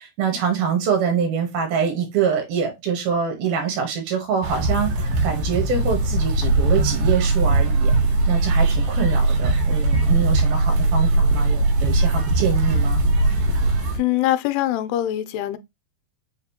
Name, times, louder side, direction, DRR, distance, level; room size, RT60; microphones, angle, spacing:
voice 1, 0.0-7.9 8.3-13.0, right 7 dB, 75° right, 2.9 m, -25 dB
sound 1, 4.4-14.0, right 2 dB, 90° right, 3.8 m, -20 dB
voice 2, 14.0-15.6, left 13 dB, 90° left, 2.6 m, -23 dB
7.2 x 2.5 x 2.7 m
omnidirectional pair, 4.6 m